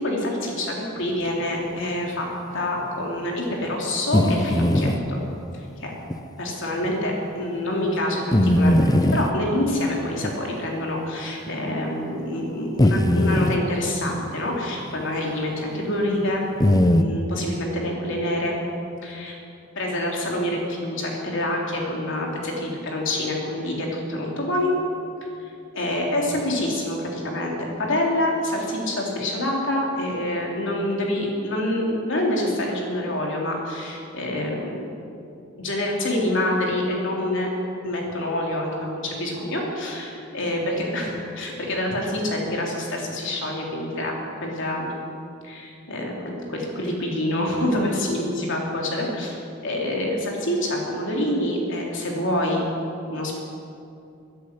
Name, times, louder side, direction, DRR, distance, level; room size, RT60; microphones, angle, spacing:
voice 1, 0.0-2.3 2.5-5.2 5.5-5.9 6.4-16.5 17.0-18.6 19.0-19.4 19.8-24.7 25.4-34.9 35.6-37.5 37.8-44.9 45.4-52.6 53.1-53.4, left 1 dB, 65° left, -1 dB, 3.5 m, -26 dB
sound 1, 4.1-5.0 6.1-6.2 6.8-7.0 8.3-9.3 10.2-10.4 11.5-11.6 12.8-13.6 16.6-17.0, left 1 dB, 20° left, 0.7 m, -19 dB
14.5 x 10.0 x 10.0 m, 2.6 s
head